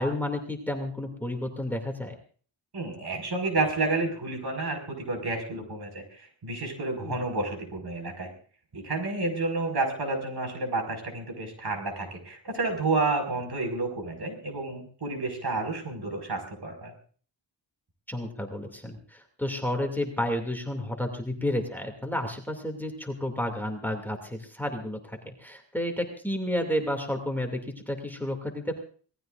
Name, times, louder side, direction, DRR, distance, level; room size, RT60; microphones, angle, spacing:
voice 1, 0.0-2.2 7.0-7.2 18.1-27.6 27.9-28.8, left 1 dB, 5° left, 4 dB, 2.6 m, -31 dB
voice 2, 2.7-8.3 8.7-16.9, right 3 dB, 60° right, 4 dB, 5.6 m, -30 dB
27.0 x 18.5 x 2.6 m, 0.43 s
wide cardioid pair, 130°, 44 cm